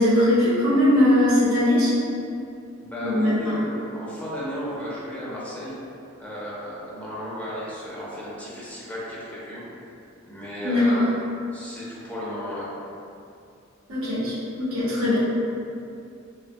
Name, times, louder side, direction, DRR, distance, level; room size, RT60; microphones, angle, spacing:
voice 1, 0.0-1.9 3.0-3.6 10.6-11.0 13.9-15.2, left 1 dB, 85° right, -9 dB, 1.0 m, -20 dB
voice 2, 2.8-5.8 6.2-9.6 10.3-11.1 11.5-12.7, equal, 5° left, -8 dB, 0.6 m, -34 dB
3.3 x 2.3 x 2.5 m, 2.6 s
head